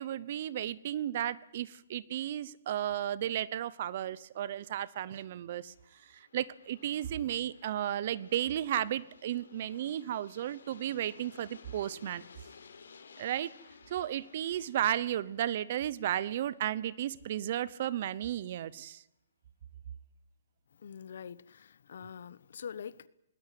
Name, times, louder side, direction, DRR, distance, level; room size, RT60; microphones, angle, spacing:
voice 1, 0.0-5.7 6.1-12.3 13.2-13.5 13.9-19.0, right 11 dB, 40° right, 0.8 m, -34 dB
Aircraft, 4.9-17.5, left 5 dB, 85° left, 4.2 m, -57 dB
voice 2, 20.8-23.1, left 7 dB, 60° left, 1.1 m, -44 dB
19.5 x 19.5 x 9.3 m
hypercardioid pair, 170°, 0 cm